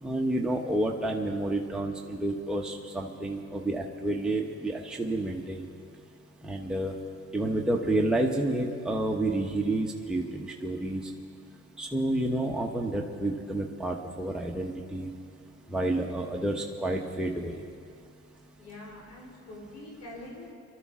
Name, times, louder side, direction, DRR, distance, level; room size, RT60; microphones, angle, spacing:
voice 1, 0.0-5.6 6.4-6.9 7.3-11.0 11.8-15.1 15.7-17.6, right 1 dB, 5° right, 0 dB, 1.1 m, -29 dB
voice 2, 18.6-20.5, left 1 dB, 70° left, -4 dB, 4.4 m, -44 dB
24.0 x 12.5 x 3.7 m, 2.3 s
cardioid pair, 90°, 30 cm